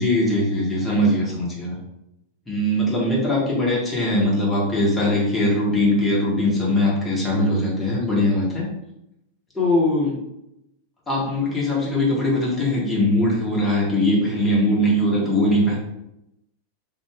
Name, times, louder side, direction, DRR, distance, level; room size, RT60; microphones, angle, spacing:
voice 1, 0.0-1.8 2.5-8.7 9.5-10.2 11.1-15.8, left 1 dB, 10° left, -6 dB, 1.1 m, -21 dB
2.4 x 2.4 x 3.1 m, 0.84 s
figure-of-eight pair, 90°, 0 cm